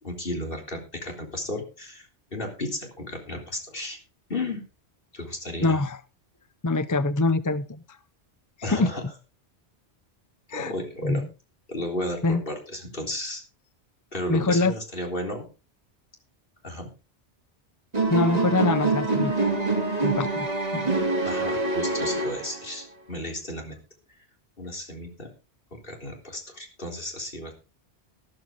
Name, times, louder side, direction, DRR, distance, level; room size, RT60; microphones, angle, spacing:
voice 1, 0.0-4.0 4.3-4.6 5.1-5.8 8.6-9.0 10.5-11.2 11.7-13.4 14.1-15.5 16.6-16.9 21.2-23.8 24.6-25.3 25.7-27.5, left 1 dB, 55° left, 2 dB, 3.9 m, -33 dB
voice 2, 5.6-6.0 6.6-7.8 8.7-8.9 10.5-10.7 11.0-11.3 12.2-12.4 14.3-14.7 18.1-19.3 20.0-20.5 20.7-20.9, left 2 dB, 25° left, 15 dB, 0.4 m, -24 dB
sound 1, 17.9-22.8, right 3 dB, 35° right, 2.3 m, -25 dB
13.0 x 13.0 x 3.7 m, 0.31 s
omnidirectional pair, 1.1 m